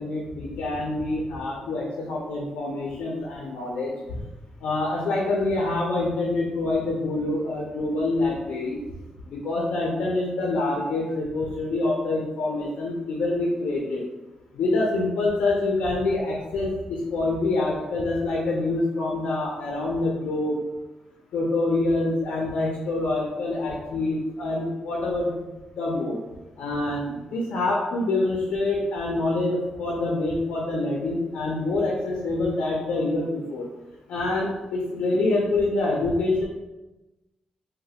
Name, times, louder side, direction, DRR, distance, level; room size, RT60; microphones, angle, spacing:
voice 1, 0.0-3.9 4.6-8.8 9.3-14.0 14.6-20.6 21.3-25.4 25.7-26.2 26.6-33.7 34.1-36.5, left 2 dB, 85° left, -2 dB, 0.5 m, -26 dB
3.1 x 2.1 x 2.8 m, 1.0 s
wide cardioid pair, 150°, 2 cm